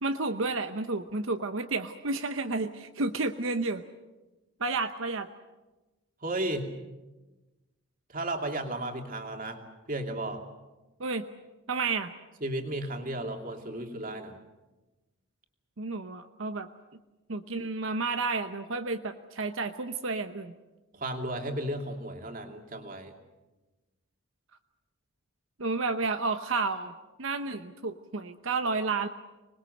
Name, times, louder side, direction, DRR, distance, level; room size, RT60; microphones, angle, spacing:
voice 1, 0.0-3.8 4.6-5.3 11.0-11.2 11.7-12.1 15.8-16.7 17.3-20.5 25.6-29.1, right 3 dB, 70° right, 8 dB, 0.9 m, -31 dB
voice 2, 6.2-6.7 8.1-9.6 9.9-10.4 12.4-14.4 20.9-23.2, right 1 dB, 40° right, 3 dB, 2.7 m, -34 dB
25.5 x 20.5 x 7.9 m, 1.1 s
head